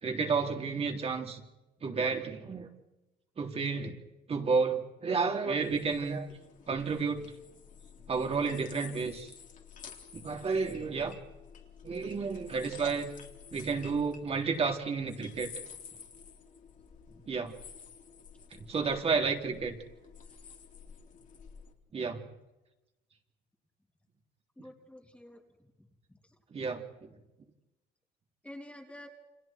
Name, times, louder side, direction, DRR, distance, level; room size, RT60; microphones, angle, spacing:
voice 1, 0.0-1.4 1.8-2.7 3.4-4.0 4.3-6.3 6.7-7.3 8.1-9.3 10.1-11.2 11.8-13.1 13.5-15.5 17.3-17.5 18.5-19.8 21.9-22.2 26.5-27.1, right 5 dB, 35° right, 2 dB, 3.8 m, -31 dB
sound 1, 5.6-21.7, left 7 dB, 50° left, 3.8 m, -51 dB
voice 2, 24.6-25.4 26.1-26.3 28.4-29.1, left 1 dB, 5° left, 1 dB, 3.2 m, -49 dB
30.0 x 27.0 x 4.7 m, 1.0 s
cardioid pair, 110°, 17 cm